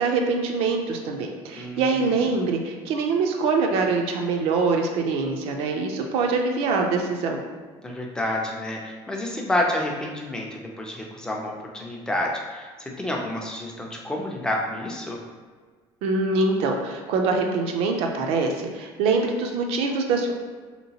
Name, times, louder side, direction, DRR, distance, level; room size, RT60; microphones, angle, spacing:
voice 1, 0.0-7.4 16.0-20.3, right 4 dB, 65° right, 3 dB, 0.5 m, -24 dB
voice 2, 1.6-2.3 7.8-15.2, left 1 dB, 5° left, -1 dB, 0.4 m, -29 dB
2.9 x 2.9 x 2.8 m, 1.5 s
cardioid pair, 150°, 11 cm